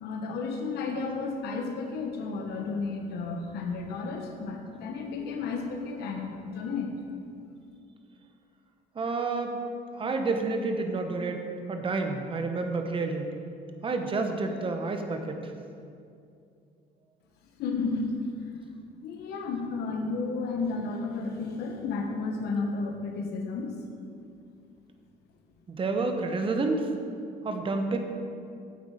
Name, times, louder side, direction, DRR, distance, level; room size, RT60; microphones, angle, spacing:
voice 1, 0.0-6.9 17.6-18.2 18.5-18.6 19.0-23.8, left 4 dB, 75° left, 2 dB, 1.1 m, -32 dB
voice 2, 8.9-9.6 9.9-11.4 11.7-13.3 13.8-15.5 25.7-26.9 27.4-28.0, right 3 dB, 30° right, 5 dB, 1.0 m, -29 dB
8.3 x 8.3 x 5.0 m, 2.5 s
cardioid pair, 110°, 17 cm